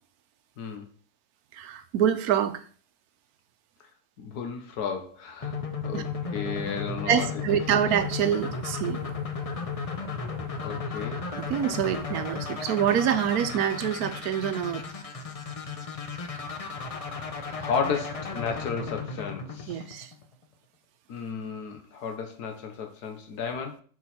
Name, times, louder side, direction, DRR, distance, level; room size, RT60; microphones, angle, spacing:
voice 1, 1.5-2.6 5.9-6.0 7.1-9.0 11.3-14.8 19.7-20.1, right 9 dB, 75° right, 10 dB, 1.1 m, -26 dB
voice 2, 4.2-7.6 10.6-11.2 17.5-19.8 21.1-23.8, left 6 dB, 80° left, 4 dB, 1.5 m, -33 dB
sound 1, 5.4-20.3, left 5 dB, 55° left, 0.3 m, -34 dB
6.1 x 4.7 x 4.2 m, 0.44 s
omnidirectional pair, 1.7 m